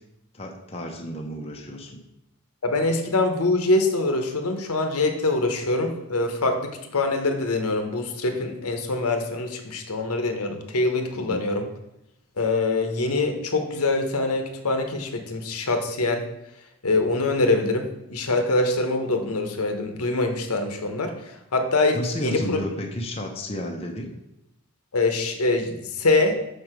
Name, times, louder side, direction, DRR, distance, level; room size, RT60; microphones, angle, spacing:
voice 1, 0.3-2.0 11.2-11.4 21.9-24.1, left 1 dB, 25° left, 1 dB, 0.8 m, -32 dB
voice 2, 2.6-11.7 12.4-16.2 16.8-21.1 21.5-22.6 24.9-26.4, left 2 dB, 80° left, 5 dB, 1.0 m, -24 dB
6.7 x 4.7 x 5.0 m, 0.83 s
head